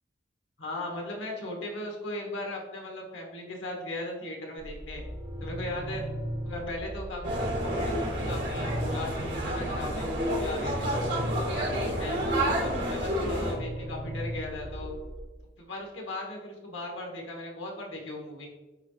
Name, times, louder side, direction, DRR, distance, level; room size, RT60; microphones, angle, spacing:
voice 1, 0.6-5.0 5.4-6.0 6.4-10.9 11.3-14.9 15.6-18.5, left 1 dB, 80° left, 0 dB, 1.6 m, -38 dB
sound 1, 4.6-15.2, equal, 50° right, 1.7 m, -38 dB
sound 2, 7.2-13.5, equal, 65° right, 2.1 m, -30 dB
9.6 x 3.8 x 3.2 m, 1.2 s
head